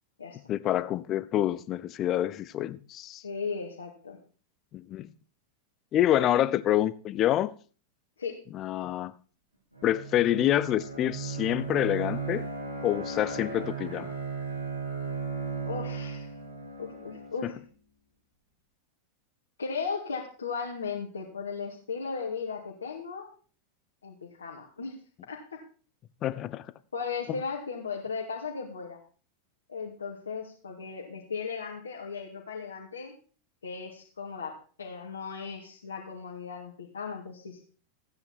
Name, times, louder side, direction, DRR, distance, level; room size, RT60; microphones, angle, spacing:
voice 1, 0.5-3.2 4.7-5.1 5.9-7.5 8.5-9.1 9.8-12.5 12.8-14.1 17.4-17.5 26.2-26.6, left 12 dB, 35° left, 0.8 m, -27 dB
voice 2, 3.2-4.2 6.2-6.4 8.2-8.4 15.7-16.3 16.8-17.6 19.6-23.3 24.0-25.0 25.3-25.6 26.9-29.0 29.7-33.1 33.6-37.6, left 5 dB, 70° left, 2.4 m, -36 dB
Bowed string instrument, 9.7-17.6, right 4 dB, 90° right, 3.9 m, -36 dB
15.0 x 9.5 x 4.5 m
figure-of-eight pair, 90°, 0 cm